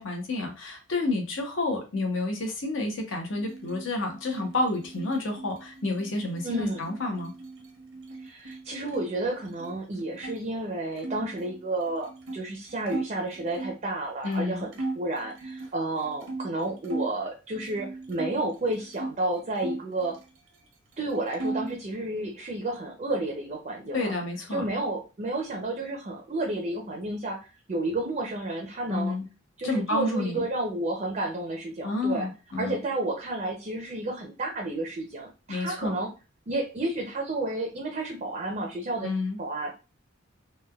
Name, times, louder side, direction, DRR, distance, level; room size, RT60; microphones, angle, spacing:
voice 1, 0.0-7.3 14.2-14.7 23.9-24.6 28.9-29.2 29.6-30.5 31.8-32.8 35.5-36.0 39.0-39.4, left 2 dB, 70° left, 2 dB, 0.8 m, -29 dB
sound 1, 3.3-9.1 9.4-10.4 11.0-13.8 14.3-14.4 14.7-17.1 17.5-19.2 19.5-20.7 20.9-21.8, right 2 dB, 80° right, 0.7 m, -38 dB
voice 2, 6.4-6.9 8.2-20.2 21.0-24.1 24.5-29.2 29.6-32.3 32.6-36.1 36.5-39.1 39.4-39.8, right 2 dB, 35° right, 1 dB, 0.5 m, -31 dB
3.2 x 2.2 x 2.3 m, 0.31 s
head